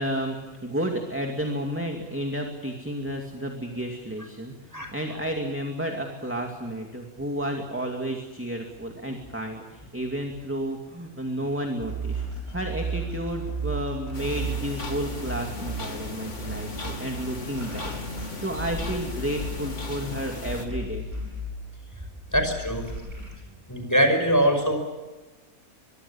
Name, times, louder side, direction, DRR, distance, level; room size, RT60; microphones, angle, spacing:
voice 1, 0.0-12.2 12.5-17.9 18.4-21.0, right 1 dB, 10° right, 2 dB, 2.5 m, -31 dB
sound 1, 11.8-21.9 22.3-23.3, right 2 dB, 30° right, 7.7 m, -34 dB
sound 2, 14.1-20.7, left 3 dB, 55° left, 3.1 m, -37 dB
voice 2, 22.3-22.9 23.7-24.8, equal, 10° left, 5 dB, 5.6 m, -22 dB
24.0 x 23.5 x 7.2 m, 1.2 s
omnidirectional pair, 1.5 m